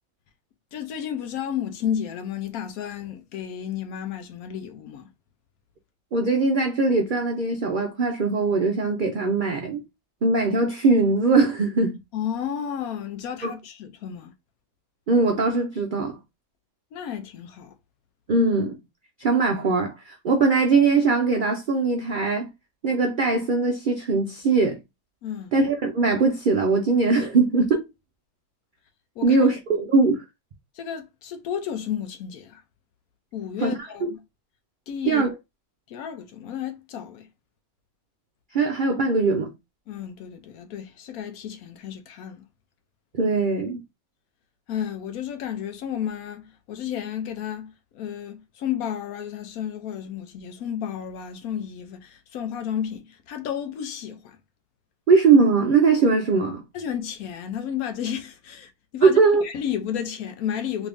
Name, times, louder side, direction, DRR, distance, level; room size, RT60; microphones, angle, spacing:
voice 1, 0.7-5.1 12.1-14.3 16.9-17.7 25.2-25.5 29.2-29.5 30.7-32.6 33.3-34.2 34.9-35.2 35.9-37.3 39.9-42.4 44.7-54.4 56.7-60.9, left 9 dB, 75° left, 1.0 m, -32 dB
voice 2, 6.1-9.8 10.2-12.0 13.4-13.5 15.1-16.2 18.3-18.8 19.2-22.5 22.8-24.8 25.5-27.8 29.2-30.2 33.6-33.7 34.0-34.1 35.1-35.3 38.5-39.5 43.1-43.8 55.1-56.6 59.0-59.4, right 4 dB, 80° right, 0.4 m, -21 dB
3.1 x 2.5 x 3.4 m
omnidirectional pair, 1.6 m